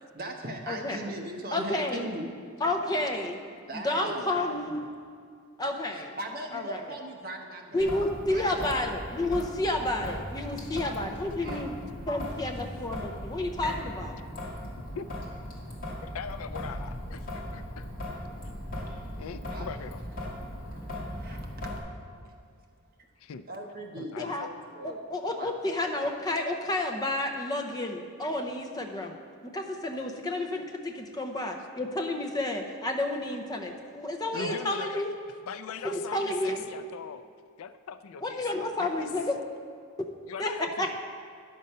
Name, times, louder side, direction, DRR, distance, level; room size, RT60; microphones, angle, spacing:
voice 1, 0.0-2.4 3.6-4.4 5.9-7.9 8.3-8.7 11.4-11.6 19.5-19.7 20.8-21.8 23.5-25.0 25.3-25.5 34.3-34.6, right 1 dB, 40° right, 2 dB, 1.0 m, -39 dB
voice 2, 0.7-1.0 1.5-2.1 2.6-3.4 3.8-4.8 5.6-6.2 6.5-6.8 7.7-11.7 12.1-14.2 24.2-24.5 24.8-29.2 29.4-35.1 35.8-36.7 38.2-39.4 40.4-40.9, left 1 dB, 15° left, 3 dB, 0.6 m, -30 dB
Traffic noise roadway noise / Drip / Trickle dribble, 7.8-21.8, left 1 dB, 40° left, 1.8 m, -38 dB
voice 3, 14.8-15.1 16.0-17.9 19.2-20.0 23.2-23.5 24.0-24.3 34.3-35.0 35.5-37.2 37.6-39.1 40.3-41.0, left 6 dB, 70° left, 11 dB, 0.4 m, -40 dB
10.5 x 6.5 x 5.5 m, 2.2 s
head